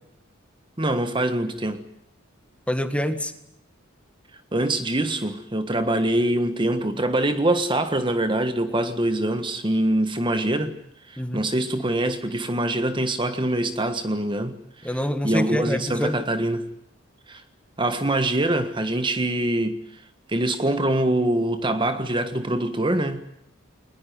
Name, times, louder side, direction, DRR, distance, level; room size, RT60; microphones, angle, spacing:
voice 1, 0.8-1.8 4.5-10.8 11.1-14.6 14.8-14.9 15.2-16.7 17.3-17.4 17.8-19.8 20.3-23.2, right 1 dB, 25° right, 1.5 m, -24 dB
voice 2, 2.7-3.3 11.2-11.4 14.8-16.2, equal, 5° left, 1.8 m, -26 dB
22.5 x 20.5 x 9.4 m
head